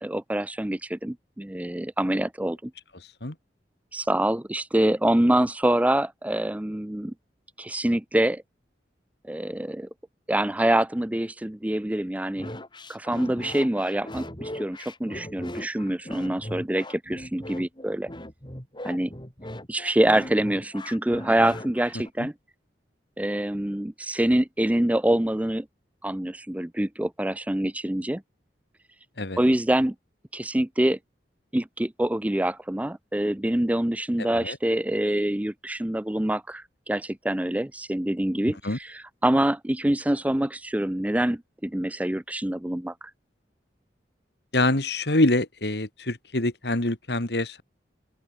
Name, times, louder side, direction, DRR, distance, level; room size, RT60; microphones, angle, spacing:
voice 1, 0.0-2.7 3.9-7.1 7.6-8.4 9.2-9.9 10.3-12.5 12.9-18.1 18.8-19.1 19.7-22.3 23.2-25.7 26.0-28.2 29.4-29.9 30.3-31.0 31.5-43.1, right 1 dB, 10° right, 0.5 m, -25 dB
sound 1, 12.4-22.1, left 1 dB, 25° left, 7.2 m, -39 dB
voice 2, 44.5-47.6, left 2 dB, 65° left, 2.4 m, -25 dB
open air
head